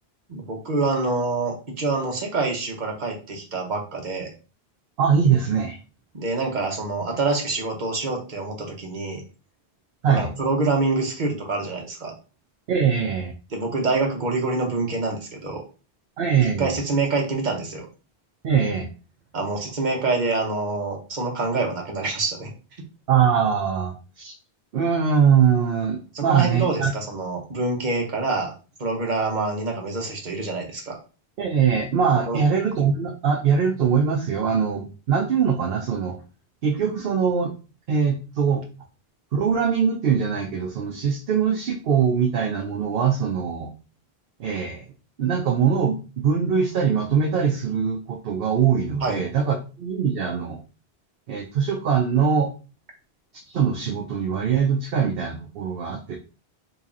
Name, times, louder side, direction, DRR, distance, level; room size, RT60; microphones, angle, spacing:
voice 1, 0.3-4.3 6.1-9.2 10.1-12.1 13.5-15.6 16.6-17.9 19.3-22.5 26.1-28.5 28.8-31.0 32.3-32.4 49.0-49.2, right 3 dB, 45° right, 1 dB, 1.1 m, -26 dB
voice 2, 5.0-5.8 10.0-10.3 12.7-13.3 16.2-16.8 18.4-18.9 23.1-24.3 24.7-26.9 31.4-36.2 36.6-37.5 37.9-38.6 39.3-43.7 44.4-44.8 45.2-50.6 51.3-52.5 53.5-56.2, right 7 dB, 65° right, 3 dB, 0.7 m, -22 dB
3.0 x 2.8 x 3.6 m, 0.34 s
omnidirectional pair, 1.1 m